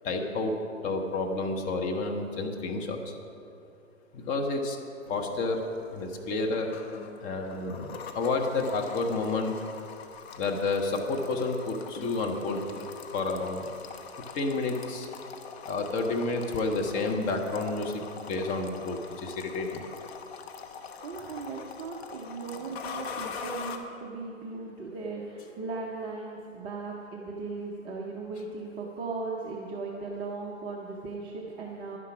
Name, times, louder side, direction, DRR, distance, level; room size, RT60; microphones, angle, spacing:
voice 1, 0.0-3.1 4.1-4.8 5.1-5.6 5.9-6.7 7.2-9.6 10.4-12.6 13.1-13.6 14.3-15.1 15.6-19.8, left 3 dB, 20° left, 2 dB, 1.0 m, -30 dB
sound 1, 5.1-23.8, left 6 dB, 50° left, 1.2 m, -43 dB
voice 2, 21.0-32.0, right 3 dB, 15° right, -3 dB, 0.5 m, -37 dB
11.0 x 10.5 x 6.0 m, 2.7 s
hypercardioid pair, 140°, 39 cm